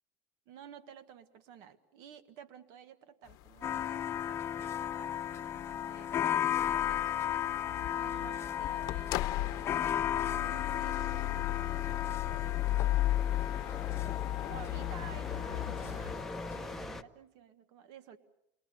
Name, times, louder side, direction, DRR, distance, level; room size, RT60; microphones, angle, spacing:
voice 1, 0.5-5.5 5.8-7.5 7.9-11.8 12.3-13.1 14.3-18.2, right 8 dB, 70° right, 11 dB, 1.7 m, -53 dB
sound 1, 3.3-16.2, left 16 dB, 60° left, 0.9 m, -36 dB
sound 2, 3.6-16.8, left 10 dB, 35° left, 0.9 m, -35 dB
sound 3, 11.6-17.0, left 2 dB, 5° left, 0.9 m, -44 dB
29.5 x 21.0 x 7.0 m, 0.86 s
cardioid pair, 130°, 7 cm